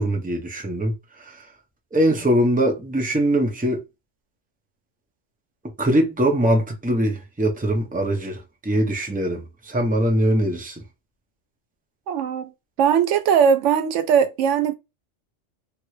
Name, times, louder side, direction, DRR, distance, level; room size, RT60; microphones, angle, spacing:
voice 1, 0.0-1.5 1.9-3.8 5.8-10.8, right 1 dB, 10° right, 0.6 m, -22 dB
voice 2, 12.1-12.5 12.8-14.7, right 7 dB, 90° right, 0.9 m, -19 dB
3.0 x 2.5 x 3.1 m
omnidirectional pair, 1.2 m